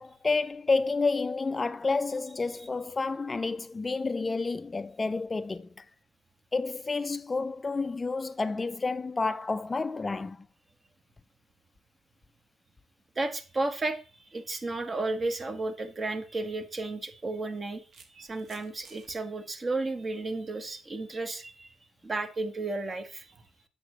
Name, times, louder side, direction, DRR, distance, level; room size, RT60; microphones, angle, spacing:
voice 1, 0.0-5.7 6.5-10.4, left 3 dB, 25° left, 0.3 m, -30 dB
voice 2, 13.2-17.8 18.1-21.7 22.0-23.4, right 2 dB, 35° right, 1.1 m, -33 dB
sound 1, 16.1-16.2 17.2-19.2, right 4 dB, 55° right, 1.2 m, -56 dB
8.1 x 6.6 x 3.1 m
cardioid pair, 90°, 0 cm